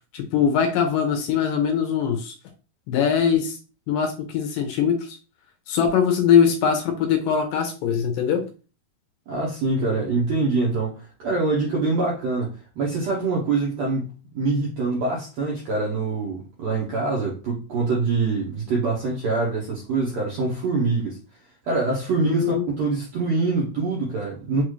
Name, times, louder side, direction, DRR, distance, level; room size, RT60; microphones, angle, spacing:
voice 1, 0.1-2.3 2.9-3.6 3.9-5.2 5.7-8.5 22.2-22.7, left 7 dB, 80° left, 2.1 m, -21 dB
voice 2, 9.3-14.1 14.3-21.2 21.6-24.6, right 3 dB, 75° right, 1.5 m, -24 dB
6.0 x 2.4 x 3.1 m
omnidirectional pair, 4.3 m